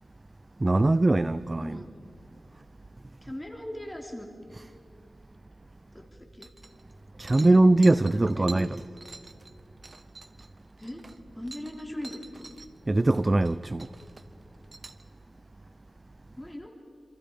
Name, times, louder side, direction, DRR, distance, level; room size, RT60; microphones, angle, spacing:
voice 1, 0.6-1.8 7.2-8.7 12.9-13.9, right 2 dB, 30° right, 0.5 m, -21 dB
voice 2, 3.2-4.3 5.9-6.5 7.4-7.6 8.1-8.8 10.8-11.0 11.3-12.5 16.4-16.7, left 1 dB, 10° left, 3.1 m, -39 dB
sound 1, 6.4-6.9 7.2-12.7 13.0-13.5 13.8-15.0, right 3 dB, 45° right, 1.4 m, -47 dB
27.5 x 27.0 x 5.1 m
wide cardioid pair, 80°, 0 cm